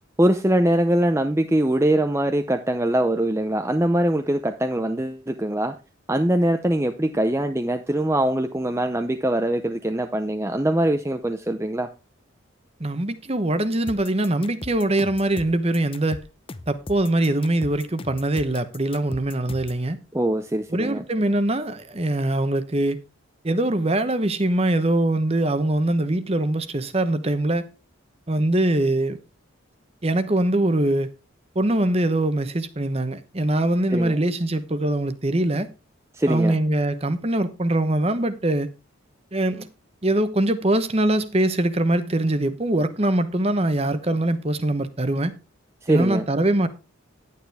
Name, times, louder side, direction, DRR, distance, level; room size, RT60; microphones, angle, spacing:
voice 1, 0.2-5.7 6.1-11.9 20.1-21.0 33.9-34.2 36.1-36.6 45.8-46.2, right 1 dB, 15° right, 0.6 m, -22 dB
voice 2, 12.8-16.2 16.7-20.0 20.7-23.0 23.4-27.7 28.3-29.2 30.0-31.1 31.5-35.7 36.3-38.7 39.3-39.7 40.0-45.3 45.9-46.7, right 1 dB, 30° right, 0.9 m, -22 dB
sound 1, 13.9-19.8, left 2 dB, 25° left, 0.6 m, -39 dB
11.0 x 9.5 x 3.5 m
head